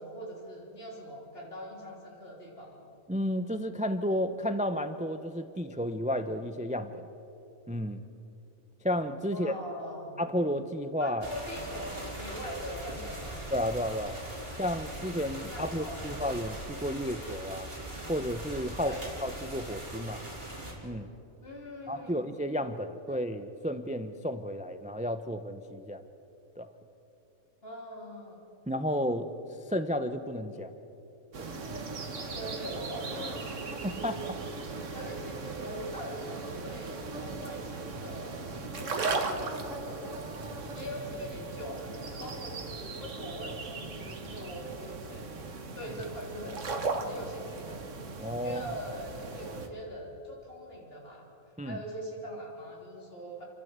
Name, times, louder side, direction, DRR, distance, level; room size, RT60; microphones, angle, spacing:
voice 1, 0.0-2.9 9.3-10.3 11.0-13.4 15.5-16.5 18.8-19.1 21.4-22.3 23.1-23.2 27.6-28.4 32.1-34.3 34.9-40.3 40.7-45.3 45.8-46.6 47.0-47.9 48.4-51.3 51.6-53.4, equal, 45° left, -2 dB, 3.9 m, -42 dB
voice 2, 3.1-7.1 7.7-8.0 8.8-9.5 10.2-11.2 13.5-14.2 14.6-17.7 18.1-18.9 19.2-20.2 20.8-21.1 21.9-26.0 26.6-26.7 28.7-29.3 29.7-30.7 31.4-31.5 33.7-34.2 48.2-48.7 51.6-51.8, equal, 10° right, 9 dB, 0.4 m, -32 dB
sound 1, 11.2-20.7, right 1 dB, 45° right, 4.3 m, -41 dB
sound 2, 31.3-49.7, right 3 dB, 60° right, 1.8 m, -38 dB
29.0 x 12.5 x 8.1 m, 2.8 s
omnidirectional pair, 1.4 m